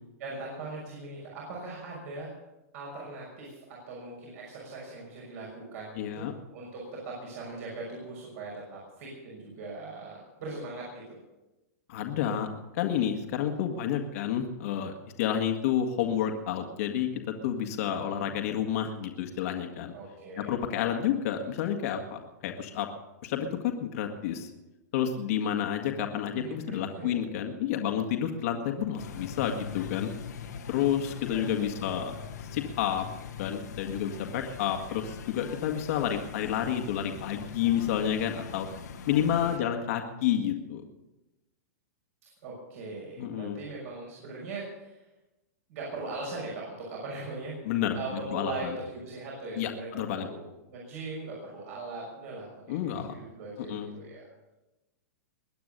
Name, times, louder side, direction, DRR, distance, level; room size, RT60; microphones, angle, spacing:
voice 1, 0.2-2.3 2.7-11.2 17.9-18.6 19.9-20.5 26.3-27.2 31.3-31.8 39.3-39.7 42.2-45.0 45.7-47.5 47.9-54.5, right 3 dB, 60° right, -4 dB, 6.3 m, -40 dB
voice 2, 6.0-6.3 11.9-12.5 12.7-19.9 20.4-22.9 23.2-24.5 24.9-30.1 30.7-32.1 32.5-33.1 33.4-38.7 39.1-40.8 43.2-43.6 47.7-48.8 49.6-50.3 52.7-53.1 53.7-53.9, left 9 dB, 60° left, 4 dB, 1.8 m, -30 dB
sound 1, 29.0-39.6, left 7 dB, 90° left, 2.0 m, -42 dB
22.0 x 9.3 x 6.7 m, 1.0 s
hypercardioid pair, 140°, 9 cm